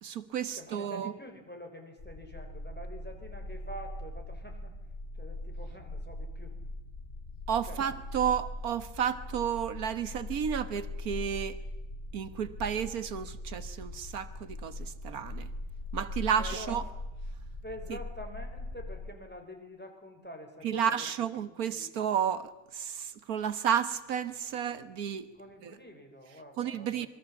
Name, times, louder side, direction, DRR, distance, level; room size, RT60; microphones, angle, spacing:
voice 1, 0.0-1.1 7.5-11.6 12.1-15.5 15.9-16.8 17.9-18.0 20.6-25.3 25.6-25.7 26.6-27.1, right 8 dB, 85° right, 1.7 m, -32 dB
voice 2, 0.5-4.8 5.1-6.6 7.7-7.9 16.4-16.8 17.6-21.0 21.4-21.9 25.3-27.1, equal, 5° left, 4.0 m, -46 dB
sound 1, 2.0-19.1, left 1 dB, 55° left, 2.8 m, -41 dB
26.0 x 22.5 x 7.2 m
omnidirectional pair, 1.5 m